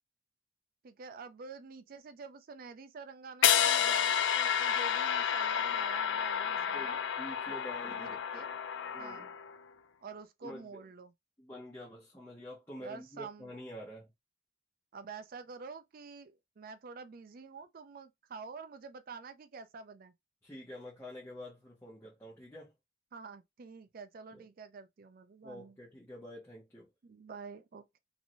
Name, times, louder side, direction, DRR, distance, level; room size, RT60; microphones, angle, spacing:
voice 1, 0.8-7.0 7.9-8.5 9.0-9.3 10.0-11.1 12.8-13.5 14.9-20.1 23.1-25.7 27.0-28.0, right 4 dB, 45° right, 0.4 m, -48 dB
sound 1, 3.4-9.6, left 9 dB, 65° left, 0.3 m, -30 dB
voice 2, 6.5-8.5 8.9-9.3 10.4-10.8 11.4-14.1 20.4-22.7 24.3-24.4 25.4-26.9, left 1 dB, 10° left, 0.8 m, -47 dB
3.0 x 2.7 x 2.6 m
head